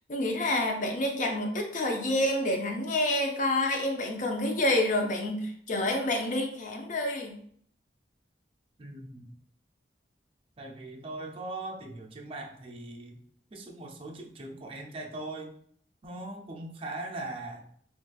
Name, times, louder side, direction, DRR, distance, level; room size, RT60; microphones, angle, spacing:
voice 1, 0.1-7.4, left 1 dB, 45° left, 3 dB, 0.5 m, -28 dB
voice 2, 8.8-9.3 10.6-13.2 13.5-15.5 16.0-17.7, right 2 dB, 30° right, 1 dB, 0.5 m, -40 dB
3.9 x 2.4 x 2.3 m, 0.62 s
head